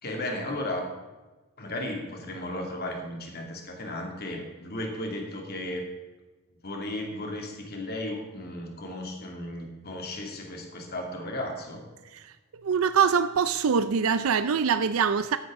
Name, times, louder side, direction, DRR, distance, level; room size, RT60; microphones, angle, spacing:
voice 1, 0.0-0.9 1.6-5.9 6.6-11.9, left 1 dB, 45° left, 2.3 m, -35 dB
voice 2, 12.6-15.4, right 6 dB, 75° right, 0.5 m, -24 dB
14.0 x 11.0 x 3.7 m
head